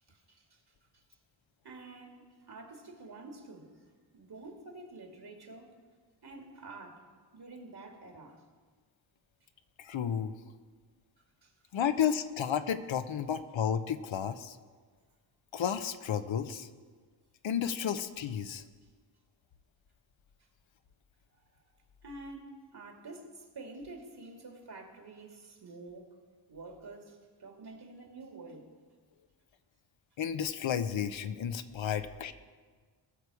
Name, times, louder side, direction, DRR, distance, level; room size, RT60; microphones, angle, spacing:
voice 1, 0.1-0.6 1.6-3.7 4.1-5.7 6.2-7.1 7.3-8.4 11.4-11.5 22.0-26.2 26.5-28.7, right 3 dB, 50° right, 2 dB, 2.4 m, -48 dB
voice 2, 9.8-10.3 11.7-14.6 15.5-16.7 17.4-18.6 30.2-32.3, left 8 dB, 65° left, 10 dB, 0.8 m, -32 dB
19.0 x 6.7 x 4.9 m, 1.5 s
cardioid pair, 55°, 49 cm